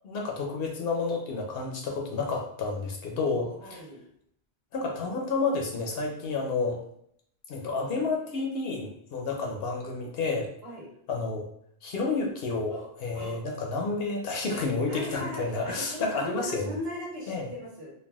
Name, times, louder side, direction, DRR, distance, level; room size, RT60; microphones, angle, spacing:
voice 1, 0.0-3.8 4.7-6.8 7.5-10.5 11.1-11.5 11.8-16.7 17.3-17.5, left 3 dB, 65° left, 1 dB, 0.7 m, -30 dB
voice 2, 3.4-4.1 10.6-10.9 12.7-13.4 14.5-17.9, equal, 65° right, -4 dB, 1.2 m, -38 dB
3.3 x 2.2 x 2.2 m, 0.68 s
omnidirectional pair, 1.1 m